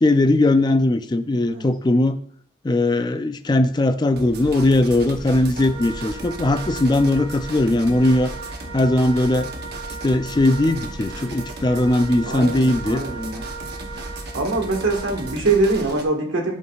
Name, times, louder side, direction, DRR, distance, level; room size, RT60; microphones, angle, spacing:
voice 1, 0.0-2.2 2.6-8.3 8.7-9.5 10.0-13.0, left 1 dB, 20° left, 9 dB, 0.3 m, -19 dB
sound 1, 4.2-16.0, right 2 dB, 50° right, 0.8 m, -35 dB
Wind instrument woodwind instrument, 5.5-15.4, right 3 dB, 25° right, 1.0 m, -38 dB
voice 2, 12.3-13.5 14.3-16.6, right 3 dB, 80° right, 1 dB, 1.5 m, -23 dB
11.0 x 4.6 x 2.4 m, 0.63 s
head